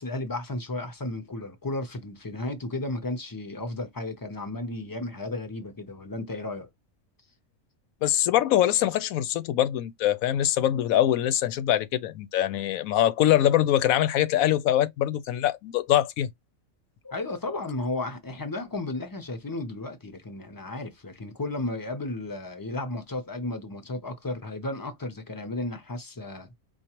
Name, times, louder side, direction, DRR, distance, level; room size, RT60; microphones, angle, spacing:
voice 1, 0.0-6.7 17.0-26.5, left 2 dB, 25° left, 0.5 m, -34 dB
voice 2, 8.0-16.3, left 12 dB, 85° left, 1.0 m, -23 dB
4.6 x 2.4 x 2.9 m
omnidirectional pair, 1.4 m